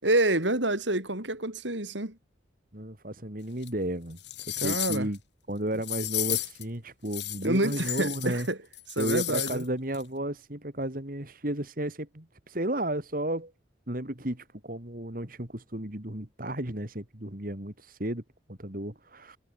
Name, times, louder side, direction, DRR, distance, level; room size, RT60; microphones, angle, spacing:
voice 1, 0.0-2.2 4.6-5.1 7.4-8.6 9.0-9.6, right 1 dB, 75° right, 7.3 m, -27 dB
voice 2, 2.7-4.2 4.5-5.2 5.5-8.5 9.0-13.5 13.9-18.2 18.5-19.4, right 1 dB, 50° right, 3.0 m, -33 dB
sound 1, 3.6-3.7 4.2-5.2 5.8-6.6 7.1-8.5 8.7-9.6 9.9-10.0, left 16 dB, 65° left, 3.4 m, -33 dB
head